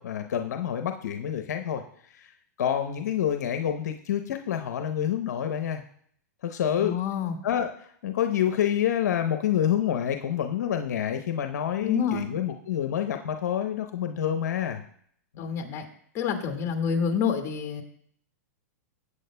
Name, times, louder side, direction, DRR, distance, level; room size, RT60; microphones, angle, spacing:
voice 1, 0.0-1.8 2.1-2.3 2.6-5.8 6.4-7.0 7.4-14.8 15.3-15.5, left 9 dB, 75° left, 6 dB, 0.8 m, -28 dB
voice 2, 6.8-7.4 11.8-12.3 15.4-15.9 16.1-17.8, left 7 dB, 30° left, 3 dB, 1.8 m, -28 dB
16.5 x 8.4 x 2.2 m, 0.64 s
hypercardioid pair, 125°, 9 cm